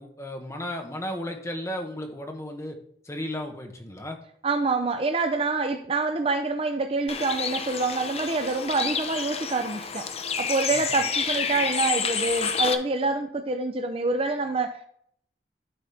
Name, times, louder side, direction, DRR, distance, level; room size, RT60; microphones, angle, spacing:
voice 1, 0.0-2.8 3.0-4.2 10.7-10.8, left 1 dB, 15° left, 1.2 m, -34 dB
voice 2, 4.4-10.1 10.4-14.9, right 3 dB, 30° right, 0.5 m, -26 dB
Bird, 7.1-12.7, left 6 dB, 35° left, 0.6 m, -29 dB
12.0 x 4.1 x 3.4 m
head